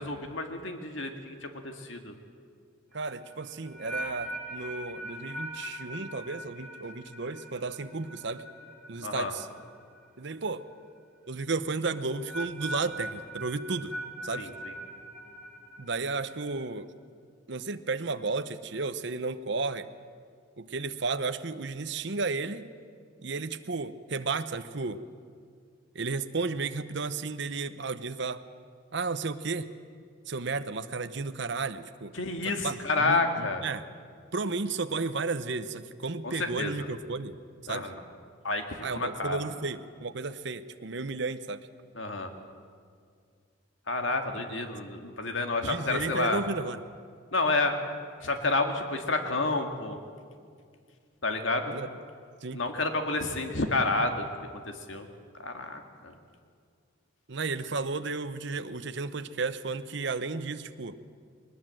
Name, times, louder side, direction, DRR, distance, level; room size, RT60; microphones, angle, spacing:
voice 1, 0.0-2.1 9.0-9.3 14.4-14.7 32.1-33.6 36.2-36.7 37.7-38.0 38.4-39.4 42.0-42.3 43.9-46.4 47.3-47.8 48.2-50.0 51.2-51.7 52.5-55.1 55.4-56.2, left 3 dB, 65° left, 5 dB, 1.9 m, -30 dB
sound 1, 2.9-10.0 10.3-10.7 11.9-16.6, right 1 dB, 5° left, 6.1 m, -41 dB
voice 2, 2.9-8.4 8.9-9.5 10.2-10.6 11.3-13.9 14.2-14.5 15.8-16.9 17.5-19.9 20.6-22.7 23.2-25.0 25.9-28.4 28.9-29.7 30.3-32.1 32.4-33.9 34.3-37.4 37.7-37.9 38.8-41.7 44.5-44.6 45.6-46.8 51.7-51.9 52.4-52.6 57.3-61.0, right 3 dB, 60° right, 11 dB, 0.8 m, -33 dB
21.0 x 20.0 x 7.6 m, 2.1 s
head